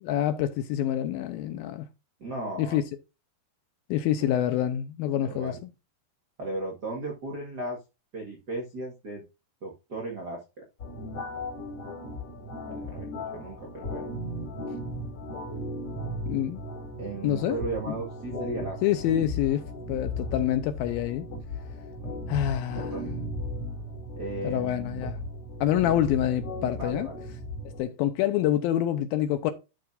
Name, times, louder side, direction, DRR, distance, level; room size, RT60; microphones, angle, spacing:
voice 1, 0.0-1.9 2.6-2.8 3.9-5.5 16.3-16.6 17.2-17.6 17.9-18.0 18.8-21.3 22.3-23.0 24.4-25.2 25.6-27.1 27.8-29.5, left 11 dB, 80° left, 2.2 m, -26 dB
voice 2, 2.2-2.8 4.2-4.4 5.2-5.6 6.4-7.8 8.1-9.2 9.6-10.4 12.6-14.1 17.0-18.8 22.0-22.1 22.7-23.1 24.2-25.0 26.7-27.2, right 2 dB, 70° right, 0.9 m, -36 dB
sound 1, 10.8-27.8, left 1 dB, 40° left, 3.2 m, -36 dB
11.5 x 6.2 x 2.5 m
omnidirectional pair, 4.7 m